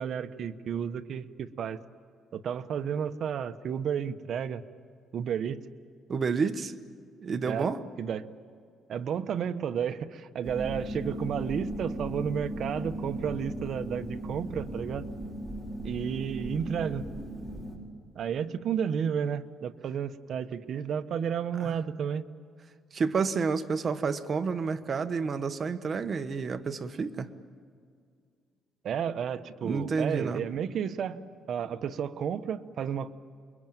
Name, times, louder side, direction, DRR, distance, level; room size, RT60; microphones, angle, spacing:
voice 1, 0.0-1.8 2.3-4.6 5.1-5.6 7.4-7.7 8.0-8.3 8.9-15.1 15.8-17.1 18.1-22.3 28.8-31.2 31.5-33.1, right 8 dB, 60° right, 9 dB, 1.1 m, -32 dB
voice 2, 6.1-6.7 7.2-7.8 21.6-21.7 22.9-27.3 29.6-30.4, right 5 dB, 35° right, 9 dB, 1.3 m, -30 dB
sound 1, 10.4-17.8, right 1 dB, 15° right, 4.8 m, -37 dB
27.5 x 22.5 x 9.2 m, 2.1 s
cardioid pair, 120°, 0 cm